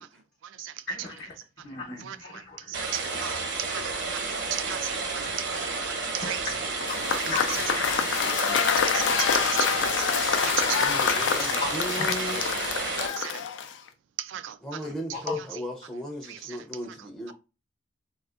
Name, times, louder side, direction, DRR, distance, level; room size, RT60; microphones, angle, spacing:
voice 1, 0.9-1.3 1.6-2.7 6.2-6.3 7.3-8.3 11.6-11.7 12.0-12.2 15.1-15.4, left 4 dB, 55° left, 0.9 m, -35 dB
voice 2, 2.0-2.4 2.7-6.4 7.1-7.6 8.4-10.1 10.4-10.9 13.2-13.4 14.2-14.6 16.3-16.4, right 11 dB, 90° right, 0.3 m, -35 dB
sound 1, 2.7-13.1, right 3 dB, 70° right, 0.8 m, -31 dB
Cheering / Applause / Crowd, 6.8-13.9, left 7 dB, 85° left, 0.4 m, -26 dB
voice 3, 10.8-12.7 14.6-17.3, left 1 dB, 5° left, 0.5 m, -36 dB
3.7 x 2.4 x 2.4 m
head